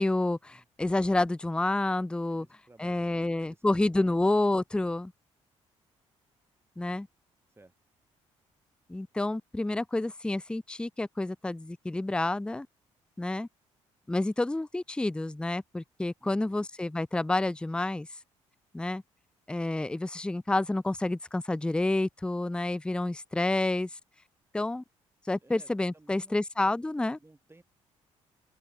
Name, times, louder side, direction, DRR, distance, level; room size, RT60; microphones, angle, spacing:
voice 1, 0.0-2.5 2.8-5.1 6.8-7.1 8.9-12.7 13.2-13.5 14.1-18.1 18.7-19.0 19.5-23.9 24.5-24.8 25.3-27.2, left 2 dB, 5° left, 0.5 m, -29 dB
voice 2, 2.3-4.2 7.5-7.7 16.2-16.7 25.4-26.8 27.1-27.6, right 2 dB, 15° right, 4.8 m, -57 dB
open air
figure-of-eight pair, 45°, 16 cm